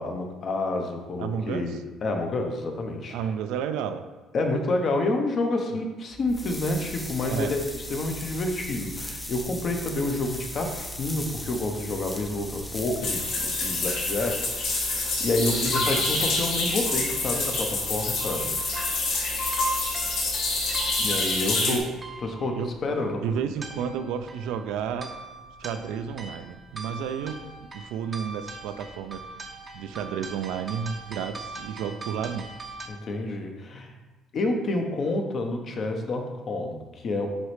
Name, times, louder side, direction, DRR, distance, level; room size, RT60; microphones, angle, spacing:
voice 1, 0.0-3.2 4.3-18.5 19.3-19.4 21.0-21.9 22.2-23.2 32.9-34.0 34.3-37.3, left 2 dB, 45° left, 3 dB, 0.8 m, -29 dB
voice 2, 1.2-1.7 3.1-4.1 7.2-7.5 15.4-16.0 21.6-21.8 22.5-22.7 23.2-25.1 25.6-27.4 27.7-29.2 29.7-32.5, right 7 dB, 85° right, 9 dB, 0.4 m, -31 dB
sound 1, 6.1-21.9, equal, 15° left, 0.6 m, -38 dB
sound 2, 13.0-21.8, left 3 dB, 65° left, 1.6 m, -27 dB
sound 3, 18.3-32.9, right 3 dB, 25° right, 0.6 m, -42 dB
9.4 x 3.1 x 3.2 m, 1.2 s
cardioid pair, 120°, 0 cm